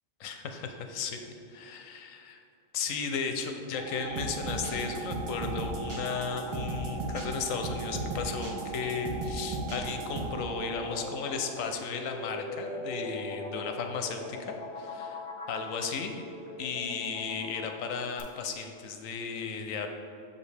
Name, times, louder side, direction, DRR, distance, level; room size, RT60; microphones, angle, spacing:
voice 1, 0.2-1.2 1.5-2.4 2.7-16.2 16.6-19.9, left 5 dB, 85° left, 5 dB, 1.0 m, -35 dB
sound 1, 3.7-12.4, right 4 dB, 85° right, 1.4 m, -41 dB
sound 2, 4.1-10.3, right 1 dB, 35° right, 0.5 m, -36 dB
sound 3, 9.8-18.2, left 3 dB, 50° left, 1.0 m, -41 dB
7.0 x 5.1 x 3.3 m, 2.5 s
omnidirectional pair, 1.3 m